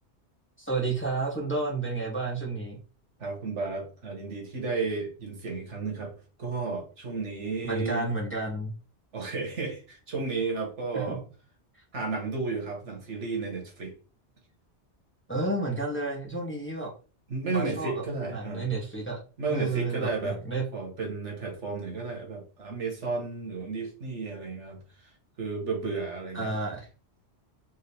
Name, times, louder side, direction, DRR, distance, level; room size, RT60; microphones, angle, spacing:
voice 1, 0.6-2.8 7.6-8.7 10.9-11.2 15.3-16.9 17.5-18.0 18.3-19.2 19.5-20.6 26.3-26.9, right 3 dB, 10° left, 1.2 m, -31 dB
voice 2, 3.2-6.1 6.4-8.1 9.1-11.2 11.9-13.9 17.3-18.7 19.4-20.4 20.7-24.8 25.4-26.5, right 4 dB, 85° right, 1.7 m, -33 dB
4.6 x 3.1 x 3.4 m
omnidirectional pair, 1.2 m